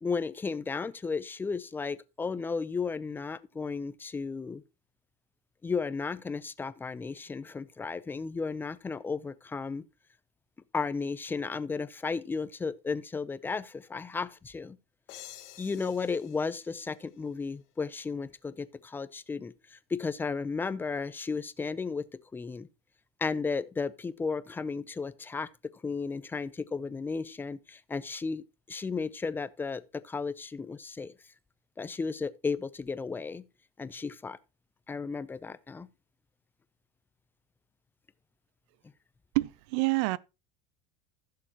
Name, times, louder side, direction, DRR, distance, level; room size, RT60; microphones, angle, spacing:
voice 1, 0.0-4.6 5.6-9.8 10.7-14.8 15.6-22.1 22.3-22.7 23.2-31.1 31.8-33.4 33.8-34.4 34.9-35.9, left 4 dB, 15° left, 0.6 m, -34 dB
sound 1, 15.1-17.8, left 14 dB, 70° left, 1.6 m, -51 dB
voice 2, 39.3-40.2, right 22 dB, 70° right, 0.6 m, -27 dB
15.5 x 6.7 x 2.9 m
supercardioid pair, 130°, 15 cm